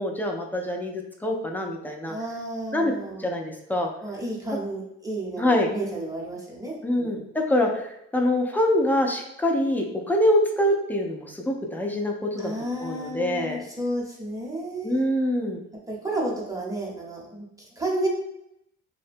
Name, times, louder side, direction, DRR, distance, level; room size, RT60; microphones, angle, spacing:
voice 1, 0.0-2.2 2.7-2.9 3.2-3.9 5.4-5.7 6.8-12.5 12.8-13.6 14.8-15.6, left 1 dB, 5° left, 1 dB, 0.4 m, -25 dB
voice 2, 2.1-3.2 4.0-7.3 12.4-15.0 15.9-18.1, right 1 dB, 10° right, -3 dB, 0.8 m, -32 dB
2.7 x 2.1 x 2.6 m, 0.79 s
cardioid pair, 90°, 30 cm